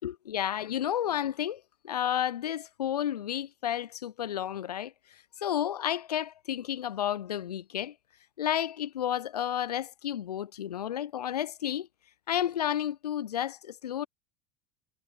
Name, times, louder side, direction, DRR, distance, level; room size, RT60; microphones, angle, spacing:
voice 1, 0.0-4.9 5.4-7.9 8.4-11.9 12.3-14.1, left 10 dB, 85° left, 0.4 m, -31 dB
hypercardioid pair, 80°, 20 cm